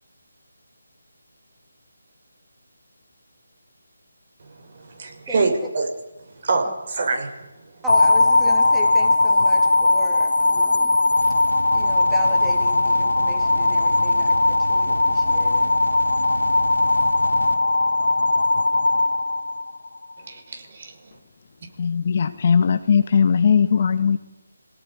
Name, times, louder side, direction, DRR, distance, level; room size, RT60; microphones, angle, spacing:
voice 1, 4.4-5.9 6.4-7.5 20.2-20.9, right 3 dB, 50° right, 4 dB, 5.9 m, -25 dB
voice 2, 7.8-11.0 11.7-15.7, equal, 5° right, -1 dB, 3.4 m, -36 dB
sound 1, 7.9-20.0, left 2 dB, 75° left, 0.7 m, -19 dB
sound 2, 11.1-17.6, right 2 dB, 85° right, 3.1 m, -34 dB
voice 3, 21.8-24.2, left 6 dB, 40° left, 8 dB, 1.8 m, -19 dB
24.0 x 17.5 x 9.9 m, 0.98 s
figure-of-eight pair, 160°, 0 cm